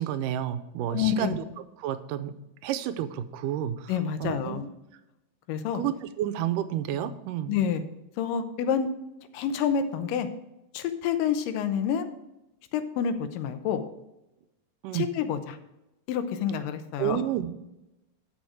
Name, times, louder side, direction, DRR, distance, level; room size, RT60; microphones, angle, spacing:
voice 1, 0.0-1.4 1.8-2.3 2.6-3.8 4.2-4.6 5.8-7.6 14.8-15.1 17.0-17.5, right 11 dB, 80° right, 10 dB, 2.2 m, -30 dB
voice 2, 0.9-1.4 3.9-4.7 5.5-5.8 7.5-7.8 8.2-8.9 9.3-10.3 10.7-12.1 12.7-13.8 14.9-15.6 16.1-17.2, left 8 dB, 80° left, 9 dB, 2.5 m, -28 dB
10.5 x 6.4 x 4.8 m, 0.92 s
omnidirectional pair, 3.9 m